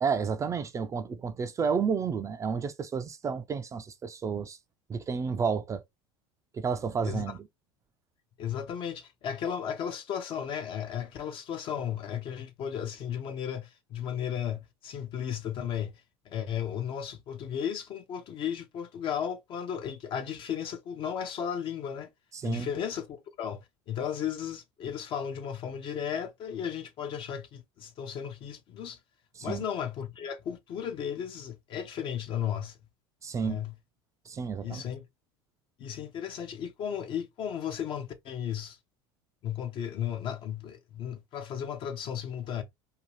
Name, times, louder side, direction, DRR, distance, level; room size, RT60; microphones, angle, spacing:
voice 1, 0.0-4.6 4.9-5.8 6.5-7.4 22.3-22.7 29.4-29.7 33.2-33.6 34.3-34.8, right 6 dB, 25° right, 0.4 m, -31 dB
voice 2, 8.4-15.9 16.3-22.1 22.4-29.0 29.4-32.8 33.4-33.7 34.6-35.1 35.8-38.8 39.4-42.6, left 8 dB, 50° left, 0.7 m, -35 dB
2.7 x 2.3 x 3.0 m
hypercardioid pair, 90°, 12 cm